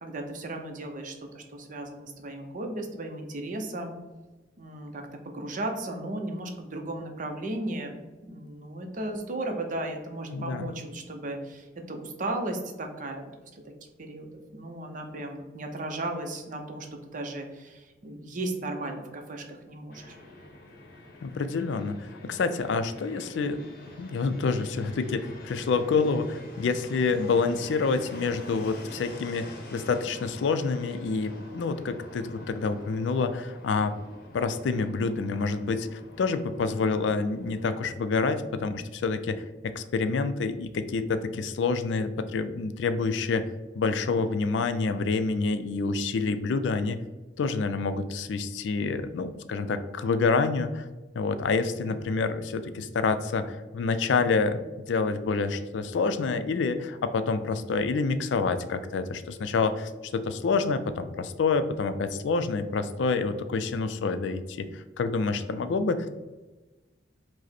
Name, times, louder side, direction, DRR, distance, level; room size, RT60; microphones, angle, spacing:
voice 1, 0.0-3.9 4.6-13.7 14.0-20.2 51.8-51.9, right 1 dB, 45° right, 4 dB, 0.6 m, -35 dB
voice 2, 10.3-10.7 21.2-23.6 24.0-33.9 34.3-43.5 43.8-47.0 47.4-50.9 51.2-66.2, left 4 dB, 75° left, 11 dB, 0.3 m, -27 dB
Fixed-wing aircraft airplane, 19.9-37.9, left 1 dB, 55° left, 0.7 m, -46 dB
4.9 x 2.1 x 4.1 m, 1.2 s
head